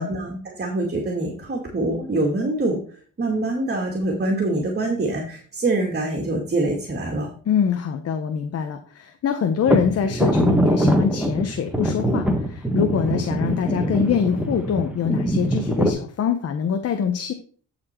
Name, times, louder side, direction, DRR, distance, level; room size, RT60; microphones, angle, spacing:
voice 1, 0.0-2.8 3.2-7.3, right 2 dB, 35° right, 1 dB, 2.2 m, -24 dB
voice 2, 7.5-17.3, left 7 dB, 55° left, 7 dB, 0.9 m, -24 dB
sound 1, 9.7-15.9, right 1 dB, 5° right, 1.6 m, -22 dB
10.5 x 4.4 x 4.5 m, 0.43 s
cardioid pair, 90°, 30 cm